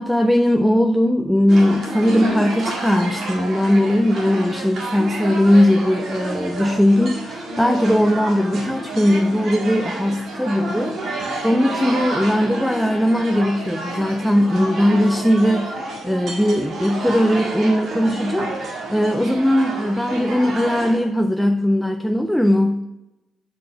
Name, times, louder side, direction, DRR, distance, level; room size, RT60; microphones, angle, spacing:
voice 1, 0.0-22.8, left 1 dB, ahead, 5 dB, 0.4 m, -19 dB
sound 1, 1.5-21.0, right 2 dB, 65° right, 1.8 m, -29 dB
4.9 x 4.5 x 5.7 m, 0.96 s
cardioid pair, 90°, 0 cm